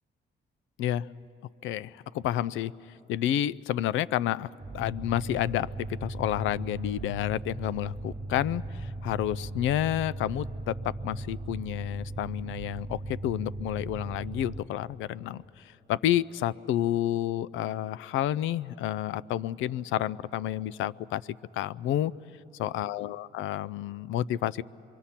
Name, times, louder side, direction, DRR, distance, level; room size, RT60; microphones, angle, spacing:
voice 1, 0.8-1.1 1.6-2.7 3.1-4.5 4.7-21.2 21.5-22.1 22.6-24.6, left 12 dB, 80° left, 19 dB, 0.4 m, -30 dB
sound 1, 4.6-14.6, right 2 dB, 25° right, 0.8 m, -38 dB
26.0 x 23.0 x 5.7 m, 2.7 s
cardioid pair, 90°, 20 cm